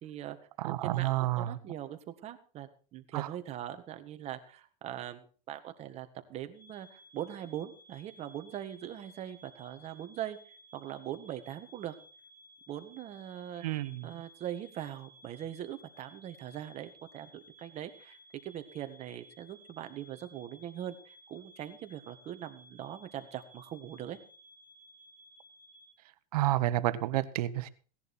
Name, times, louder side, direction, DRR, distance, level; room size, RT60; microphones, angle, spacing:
voice 1, 0.0-0.4 0.6-10.4 10.7-11.9 12.7-17.3 17.6-18.2 18.4-24.2, right 11 dB, 35° right, 8 dB, 1.6 m, -41 dB
voice 2, 0.6-1.6 3.1-3.3 13.6-14.1 26.3-27.7, right 15 dB, 75° right, 14 dB, 1.2 m, -30 dB
sound 1, 6.5-25.9, equal, 80° left, 7.1 m, -58 dB
17.5 x 10.5 x 4.4 m, 0.39 s
supercardioid pair, 140°, 20 cm